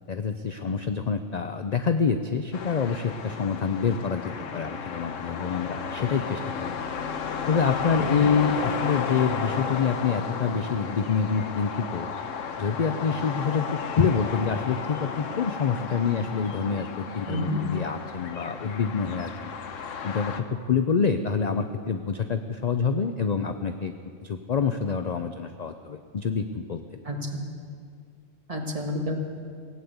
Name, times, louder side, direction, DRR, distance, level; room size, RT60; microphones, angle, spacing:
voice 1, 0.1-6.8 7.5-12.1 12.6-13.7 14.0-19.5 20.0-23.9 24.2-26.8, left 6 dB, 50° left, 8 dB, 0.5 m, -26 dB
sound 1, 2.5-20.4, left 6 dB, 75° left, 1.2 m, -33 dB
voice 2, 7.9-8.3 17.3-17.6 27.0-27.3 28.5-29.2, equal, 30° right, 1 dB, 1.7 m, -30 dB
17.0 x 8.6 x 8.0 m, 2.2 s
omnidirectional pair, 1.3 m